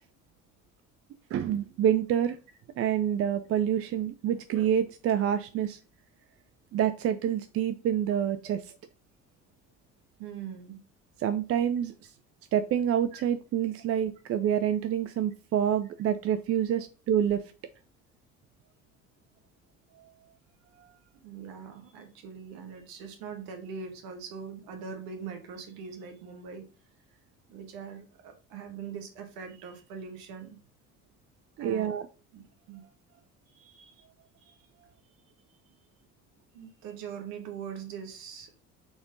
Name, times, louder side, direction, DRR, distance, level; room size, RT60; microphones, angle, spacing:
voice 1, 1.3-2.4 2.8-5.8 6.7-8.6 11.2-12.1 12.5-17.4 20.0-20.1 31.6-32.1 33.7-33.9, right 9 dB, 35° right, 11 dB, 0.6 m, -27 dB
voice 2, 10.2-10.8 13.1-13.2 21.2-26.6 27.5-30.6 31.6-31.9 32.3-32.8 36.5-38.5, right 6 dB, 60° right, 5 dB, 1.7 m, -42 dB
6.7 x 4.3 x 4.0 m, 0.35 s
figure-of-eight pair, 55°, 41 cm